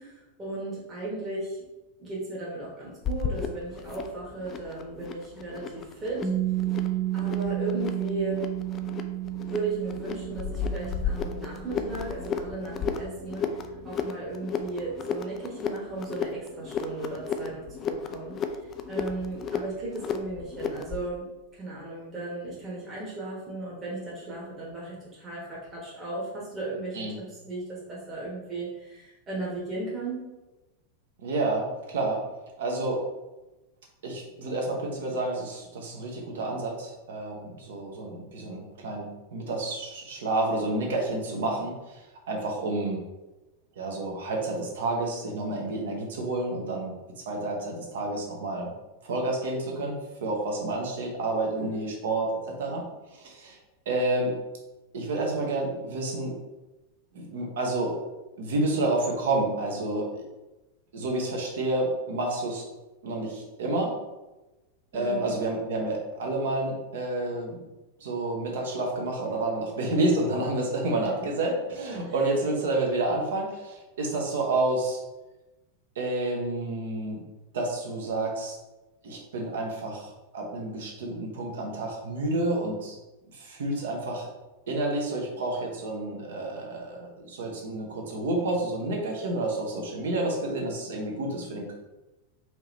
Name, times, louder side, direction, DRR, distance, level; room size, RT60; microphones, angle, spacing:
voice 1, 0.0-1.6 2.0-6.3 7.1-8.4 9.5-13.5 13.8-18.4 18.9-21.3 21.5-30.3 51.5-51.9 64.9-65.3 71.0-71.1 71.9-72.1, right 2 dB, 25° right, -6 dB, 1.1 m, -36 dB
sound 1, 3.0-21.1, left 6 dB, 30° left, 0.4 m, -34 dB
Piano, 6.2-13.5, right 13 dB, 10° left, 0.8 m, -32 dB
voice 2, 31.2-32.2 32.6-33.0 34.0-43.0 43.8-46.9 47.3-48.7 49.0-52.3 52.6-52.8 53.1-53.6 53.9-54.3 54.9-56.3 57.1-57.9 58.4-60.2 60.9-62.6 63.0-63.9 64.9-67.6 68.0-75.0 76.0-77.2 77.5-78.6 79.0-83.0 83.3-84.3 84.7-91.7, right 2 dB, 60° right, 0 dB, 0.9 m, -29 dB
4.6 x 2.8 x 3.1 m, 1.1 s
figure-of-eight pair, 90°, 0 cm